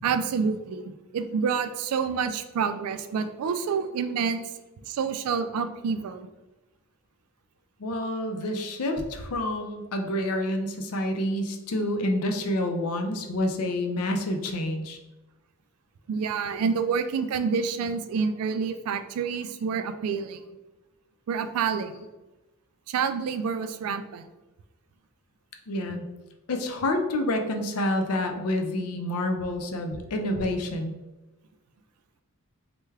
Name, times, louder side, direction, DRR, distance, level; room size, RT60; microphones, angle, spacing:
voice 1, 0.0-4.5 4.8-6.2 16.1-20.4 21.3-22.0 22.9-24.3, right 6 dB, 75° right, 9 dB, 0.3 m, -28 dB
voice 2, 7.8-15.0 25.7-26.1 26.5-30.9, left 1 dB, 80° left, 5 dB, 0.5 m, -28 dB
3.3 x 2.2 x 3.2 m, 1.1 s
head